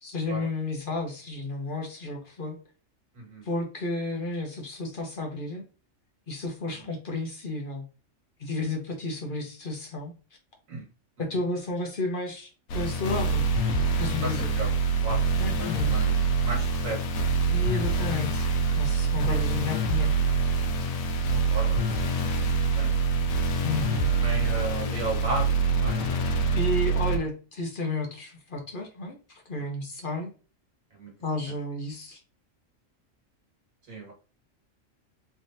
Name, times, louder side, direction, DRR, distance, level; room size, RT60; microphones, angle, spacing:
voice 1, 0.0-2.6 3.4-5.6 6.3-7.8 8.4-10.1 11.2-13.5 14.0-14.5 15.4-16.0 17.5-18.5 18.7-20.1 23.6-24.1 26.5-30.3 31.2-32.2, left 2 dB, 45° left, 1 dB, 0.9 m, -32 dB
voice 2, 3.1-3.4 6.8-6.9 10.7-10.8 14.2-14.7 15.0-15.2 15.6-16.1 16.4-17.3 21.3-23.0 24.1-26.4 30.9-31.1 33.9-34.1, right 2 dB, 85° right, 0 dB, 1.9 m, -35 dB
sound 1, 12.7-27.2, right 3 dB, 85° left, 1.0 m, -25 dB
3.4 x 3.2 x 2.6 m, 0.35 s
omnidirectional pair, 1.4 m